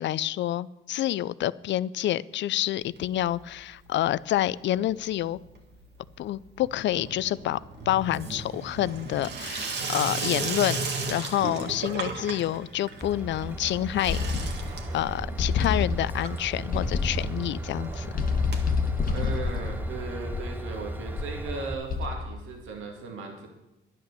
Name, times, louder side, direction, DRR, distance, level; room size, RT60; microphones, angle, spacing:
voice 1, 0.0-5.4 6.2-7.6 7.9-14.2 14.9-18.1, left 13 dB, 65° left, 19 dB, 0.5 m, -28 dB
Water tap faucet / Sink (filling or washing), 2.8-3.6 3.8-4.4 4.7-20.0 20.3-20.4 20.6-20.7 20.9-21.0 22.0-22.1, right 3 dB, 60° right, 1.8 m, -37 dB
voice 2, 10.1-10.6 12.0-12.4 19.1-23.5, right 4 dB, 85° right, 1 dB, 2.3 m, -37 dB
Train / Engine, 13.0-21.7, right 1 dB, 10° right, 0.6 m, -36 dB
sound 1, 14.1-14.9 15.4-16.3 16.7-17.5 18.2-20.7 21.2-21.5 21.9-22.4, left 5 dB, 45° left, 1.3 m, -28 dB
10.5 x 10.5 x 6.8 m, 0.96 s
cardioid pair, 90°, 20 cm